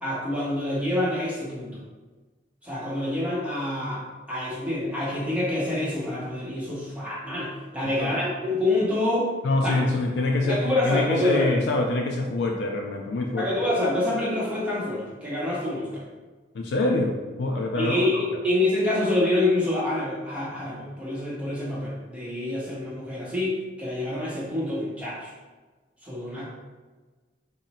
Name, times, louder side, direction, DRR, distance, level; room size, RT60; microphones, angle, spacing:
voice 1, 0.0-1.8 2.6-9.3 9.6-9.7 10.4-11.5 13.4-16.0 17.8-25.3 26.0-26.5, left 1 dB, 5° right, -7 dB, 0.7 m, -27 dB
voice 2, 9.4-13.5 16.5-18.0, left 2 dB, 70° left, 1 dB, 0.3 m, -25 dB
3.7 x 2.1 x 4.1 m, 1.3 s
head